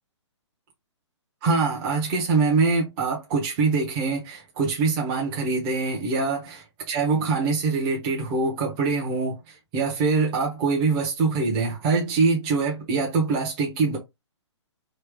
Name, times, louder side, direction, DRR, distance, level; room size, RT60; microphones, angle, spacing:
voice 1, 1.4-9.4 9.7-14.0, right 4 dB, 30° right, 1.0 m, -24 dB
3.2 x 2.9 x 3.5 m
hypercardioid pair, 145°, 15 cm